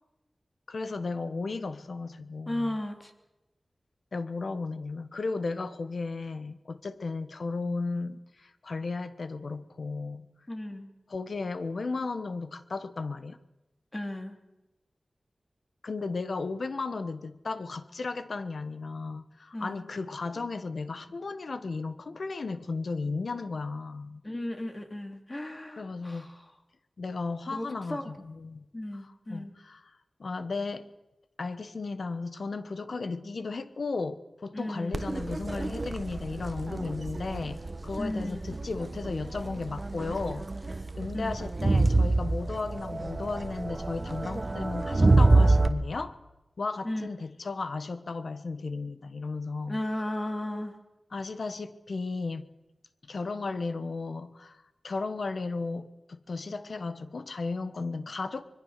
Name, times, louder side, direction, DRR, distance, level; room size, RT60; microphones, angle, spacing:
voice 1, 0.7-2.8 4.1-10.3 11.1-13.4 15.8-24.2 25.8-26.3 27.0-28.7 28.9-29.8 30.2-30.9 31.4-40.5 41.0-46.2 46.6-49.8 51.1-52.5 53.0-58.4, left 3 dB, 75° left, 12 dB, 1.3 m, -35 dB
voice 2, 2.5-3.1 10.5-10.9 13.9-14.4 19.5-19.9 24.2-26.4 27.5-28.3 28.7-29.5 34.5-35.0 38.0-38.4 41.1-41.4 46.8-47.1 49.7-50.7, left 1 dB, 30° left, 5 dB, 3.3 m, -35 dB
Crowd, 34.9-45.7, right 2 dB, 40° right, 1.3 m, -27 dB
25.0 x 21.5 x 6.7 m, 0.99 s
wide cardioid pair, 65°, 0 cm